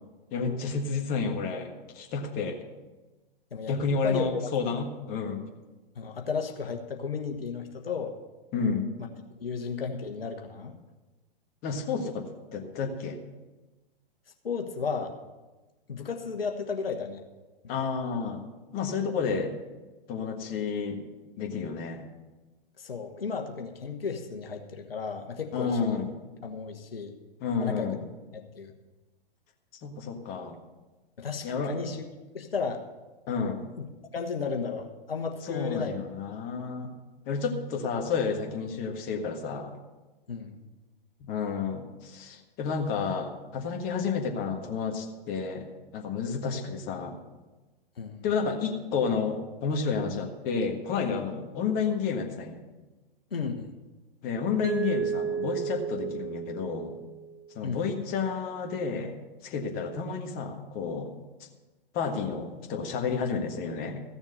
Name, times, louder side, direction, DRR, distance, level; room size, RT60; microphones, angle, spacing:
voice 1, 0.3-1.7 1.9-2.6 3.7-5.4 8.5-8.9 11.6-13.2 17.7-18.4 18.7-19.5 20.1-21.0 21.3-22.0 25.5-26.1 27.4-28.0 29.8-30.6 31.4-31.7 33.3-33.7 35.5-36.9 37.3-39.7 41.2-45.7 45.9-47.2 48.2-52.6 54.2-57.0 57.5-59.1 59.4-61.1 61.9-64.0, left 5 dB, 30° left, 2 dB, 1.7 m, -30 dB
voice 2, 6.0-8.2 9.0-9.1 9.4-10.8 14.4-15.1 15.9-17.2 17.6-17.7 22.8-26.0 26.4-27.1 27.6-28.0 28.3-28.7 31.2-32.0 32.3-32.8 33.8-33.9 34.1-36.0 40.3-40.6 48.0-48.2 53.3-53.7 57.6-57.8, left 5 dB, 80° left, 4 dB, 1.3 m, -34 dB
Mallet percussion, 54.6-57.5, right 7 dB, 10° right, 0.8 m, -33 dB
15.0 x 7.1 x 6.6 m, 1.2 s
figure-of-eight pair, 115°, 29 cm